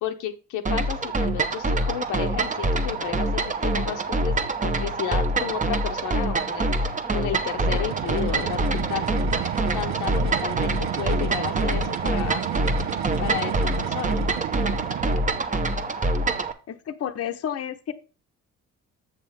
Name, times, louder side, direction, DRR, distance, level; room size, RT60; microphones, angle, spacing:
voice 1, 0.0-4.4 4.6-9.1 9.7-12.4 13.2-14.2, left 10 dB, 90° left, 6 dB, 0.9 m, -32 dB
sound 1, 0.7-16.5, right 2 dB, 25° right, 0.9 m, -25 dB
sound 2, 7.5-15.5, right 13 dB, 65° right, 0.4 m, -32 dB
voice 2, 16.7-17.9, left 9 dB, 55° left, 8 dB, 0.7 m, -31 dB
7.6 x 6.8 x 3.4 m, 0.33 s
cardioid pair, 90°, 30 cm